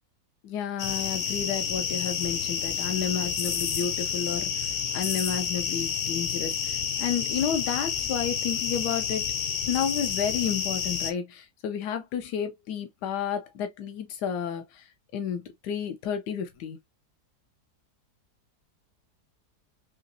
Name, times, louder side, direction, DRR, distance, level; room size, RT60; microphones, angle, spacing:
voice 1, 0.4-9.3 9.7-16.8, left 8 dB, 90° left, 1.3 m, -31 dB
sound 1, 0.8-11.1, left 7 dB, 60° left, 0.8 m, -29 dB
3.8 x 2.9 x 2.6 m
omnidirectional pair, 1.7 m